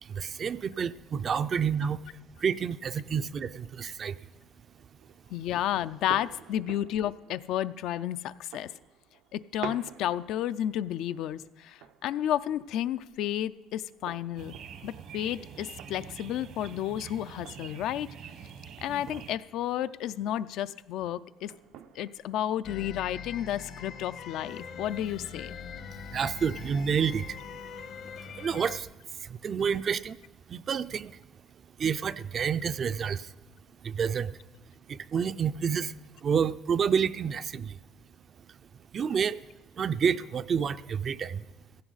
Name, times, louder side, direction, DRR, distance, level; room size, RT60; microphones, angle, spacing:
voice 1, 0.0-4.2 26.1-27.4 28.2-28.9 29.1-30.2 30.5-31.2 31.8-33.3 33.8-34.4 34.9-35.9 36.2-37.8 38.9-39.4 39.7-41.5, right 7 dB, 40° right, 14 dB, 0.4 m, -29 dB
sound 1, 4.7-23.0, right 9 dB, 85° right, 0.6 m, -50 dB
voice 2, 5.3-8.7 9.3-14.5 14.8-18.1 18.8-21.5 22.0-25.5, left 11 dB, 75° left, 14 dB, 0.4 m, -32 dB
sound 2, 14.4-19.4, right 7 dB, 65° right, 1.0 m, -45 dB
sound 3, 22.6-28.8, left 6 dB, 55° left, 0.9 m, -42 dB
16.0 x 15.5 x 4.0 m, 1.1 s
cardioid pair, 140°, 0 cm